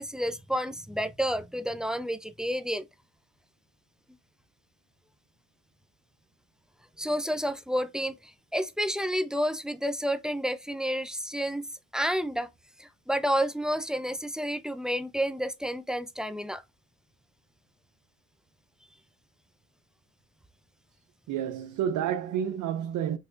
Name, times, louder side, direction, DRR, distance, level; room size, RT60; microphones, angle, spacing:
voice 1, 0.0-2.8 7.0-8.1 8.5-11.7 11.9-12.5 12.8-16.6, equal, ahead, 0.5 m, -30 dB
voice 2, 21.3-23.2, right 9 dB, 80° right, 0.6 m, -30 dB
5.7 x 3.3 x 2.5 m
cardioid pair, 90°, 30 cm